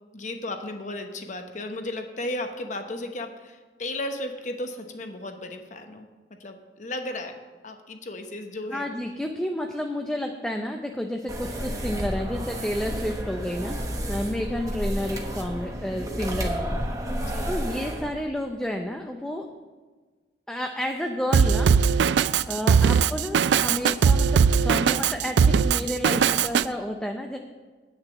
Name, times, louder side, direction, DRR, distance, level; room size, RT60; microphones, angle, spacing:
voice 1, 0.1-7.4 7.6-9.0 17.1-17.6 22.7-23.0, left 1 dB, 45° left, 5 dB, 0.9 m, -35 dB
voice 2, 8.7-13.8 14.1-16.7 17.4-19.5 20.5-21.7 22.5-27.4, left 1 dB, 5° left, 2 dB, 0.5 m, -30 dB
sound 1, 11.3-18.1, equal, 20° right, 1.1 m, -31 dB
Drum kit, 21.3-26.6, right 6 dB, 75° right, 0.3 m, -20 dB
8.9 x 6.5 x 7.3 m, 1.4 s
head